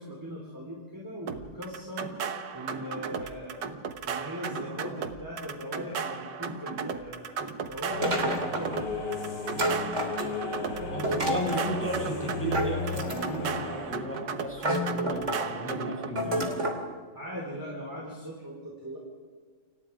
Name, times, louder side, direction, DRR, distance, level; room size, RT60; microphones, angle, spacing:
voice 1, 0.0-2.1 2.5-3.8 4.0-9.1 17.1-19.0, equal, 10° right, -3 dB, 4.2 m, -39 dB
sound 1, 1.3-16.1, right 6 dB, 85° right, 1.9 m, -36 dB
sound 2, 7.9-14.0, left 4 dB, 80° left, 3.3 m, -35 dB
sound 3, 8.0-8.8 9.6-10.5 11.0-11.7 12.5-13.5 14.1-14.2 14.6-15.5 16.2-16.8, right 1 dB, 45° right, 3.3 m, -29 dB
voice 2, 10.8-16.5, right 1 dB, 5° left, -3 dB, 7.1 m, -34 dB
30.0 x 26.0 x 4.9 m, 1.5 s
omnidirectional pair, 1.8 m